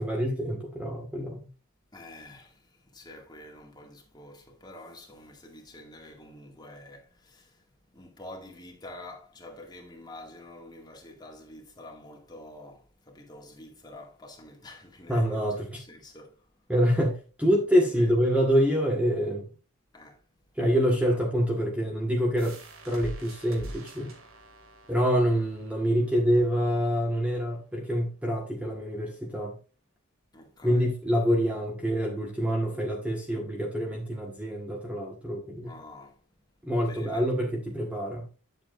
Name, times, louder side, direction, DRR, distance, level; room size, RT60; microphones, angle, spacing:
voice 1, 0.0-1.4 15.1-15.8 16.7-19.5 20.6-22.6 22.8-24.1 24.9-29.6 30.6-35.7 36.7-38.3, equal, 5° right, 1.5 m, -26 dB
voice 2, 1.9-7.6 7.9-16.4 17.8-18.1 19.9-20.2 21.1-21.2 30.3-30.9 35.6-36.2 36.8-37.2, left 1 dB, 20° left, 2.2 m, -47 dB
sound 1, 22.4-27.8, right 1 dB, 70° right, 2.4 m, -46 dB
9.9 x 7.8 x 2.5 m
head